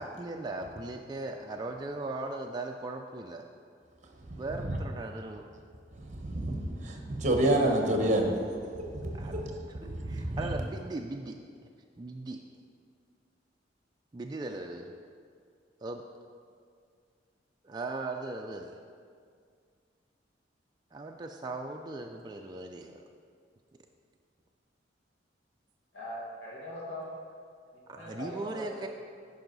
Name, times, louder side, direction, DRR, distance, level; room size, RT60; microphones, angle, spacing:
voice 1, 0.0-3.5 4.4-5.5 9.2-11.4 12.0-12.4 14.1-14.9 15.8-16.0 17.6-18.8 20.9-23.0 27.9-28.9, right 2 dB, 20° right, 2 dB, 0.3 m, -38 dB
voice 2, 6.2-8.4 8.9-9.5 9.8-10.4, right 1 dB, 40° right, 2 dB, 1.0 m, -28 dB
voice 3, 25.9-27.1 27.9-28.9, left 1 dB, 70° left, -6 dB, 1.9 m, -41 dB
10.5 x 5.3 x 4.0 m, 2.2 s
head